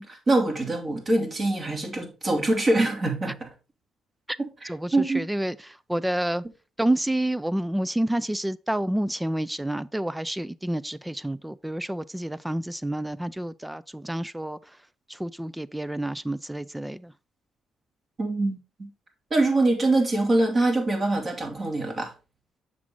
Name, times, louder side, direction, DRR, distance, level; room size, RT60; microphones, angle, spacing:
voice 1, 0.0-3.5 4.4-5.2 18.2-18.9 19.3-22.1, right 2 dB, 35° right, 2.9 m, -24 dB
voice 2, 4.7-6.4 6.8-14.6 15.1-17.1, right 1 dB, 10° right, 0.4 m, -29 dB
7.4 x 6.1 x 3.8 m
cardioid pair, 90°, 0 cm